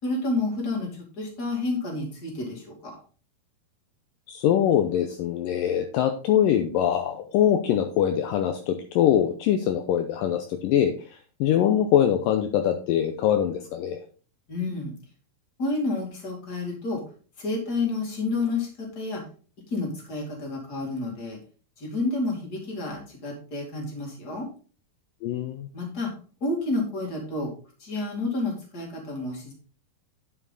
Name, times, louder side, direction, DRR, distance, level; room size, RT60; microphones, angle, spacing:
voice 1, 0.0-2.9 14.5-14.9 15.6-17.0 17.4-19.2 19.7-21.4 21.8-24.5 25.7-26.1 26.4-27.5 27.8-29.5, left 2 dB, 30° left, 0 dB, 2.5 m, -30 dB
voice 2, 4.3-10.9 11.4-14.0 25.2-25.7, left 10 dB, 80° left, 6 dB, 2.1 m, -23 dB
9.7 x 5.8 x 4.0 m, 0.39 s
omnidirectional pair, 4.5 m